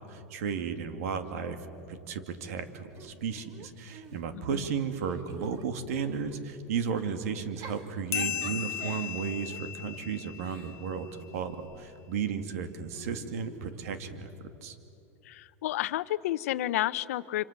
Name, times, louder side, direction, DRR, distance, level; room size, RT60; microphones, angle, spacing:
voice 1, 0.1-14.8, right 6 dB, 75° right, 9 dB, 2.5 m, -34 dB
Giggle / Chuckle chortle, 3.0-4.6 5.0-6.4 7.4-11.8 12.9-14.3, right 5 dB, 45° right, 2.8 m, -48 dB
voice 2, 4.3-4.6 15.2-17.4, left 14 dB, 75° left, 17 dB, 0.8 m, -31 dB
sound 1, 8.1-11.2, left 11 dB, 45° left, 1.1 m, -36 dB
26.5 x 26.5 x 7.5 m, 2.8 s
supercardioid pair, 125°, 8 cm